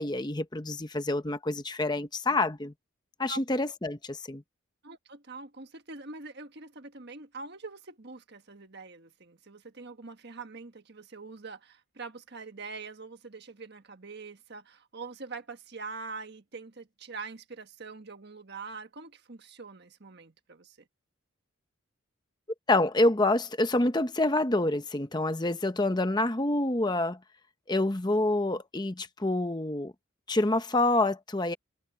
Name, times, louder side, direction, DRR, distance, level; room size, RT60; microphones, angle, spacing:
voice 1, 0.0-2.7 3.2-4.4 22.7-27.2 27.7-29.9 30.3-31.5, left 2 dB, 20° left, 0.8 m, -27 dB
voice 2, 4.8-20.9, right 4 dB, 50° right, 1.5 m, -44 dB
head